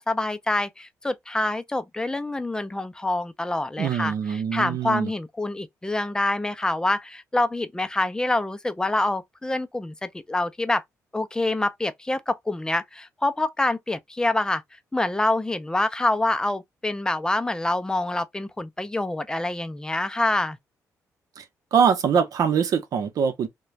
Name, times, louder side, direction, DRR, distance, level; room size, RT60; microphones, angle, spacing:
voice 1, 0.0-10.8 11.1-14.6 14.9-20.6, left 2 dB, 10° left, 0.4 m, -26 dB
voice 2, 3.8-5.1 21.4-21.5 21.7-23.5, right 7 dB, 70° right, 0.7 m, -23 dB
2.4 x 2.2 x 3.0 m
cardioid pair, 95°, 6 cm